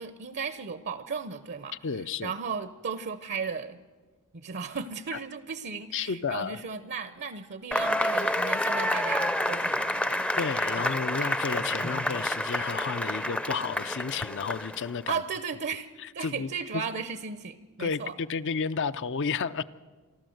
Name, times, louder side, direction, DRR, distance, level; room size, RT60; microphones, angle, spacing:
voice 1, 0.0-1.8 2.2-3.8 4.3-10.2 15.1-18.2, right 5 dB, 50° right, 12 dB, 0.6 m, -35 dB
voice 2, 1.8-2.3 5.1-5.2 5.9-6.6 10.4-15.2 16.2-16.8 17.8-19.6, left 5 dB, 55° left, 14 dB, 0.5 m, -32 dB
Cheering / Applause / Crowd, 7.7-14.9, left 1 dB, 5° left, 0.5 m, -29 dB
27.5 x 12.0 x 7.8 m, 1.4 s
head